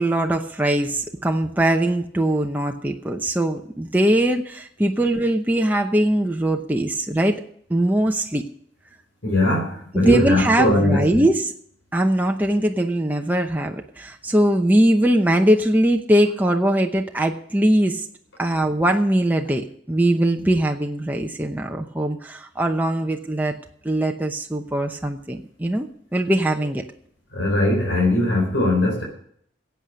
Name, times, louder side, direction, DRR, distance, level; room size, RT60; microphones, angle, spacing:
voice 1, 0.0-7.4 7.7-8.4 9.9-11.5 11.9-18.1 18.4-23.6 23.8-26.8, right 1 dB, 10° right, 3 dB, 0.8 m, -21 dB
voice 2, 9.2-11.2 27.3-29.0, left 1 dB, 90° left, -2 dB, 4.5 m, -20 dB
16.0 x 8.3 x 6.4 m, 0.64 s
head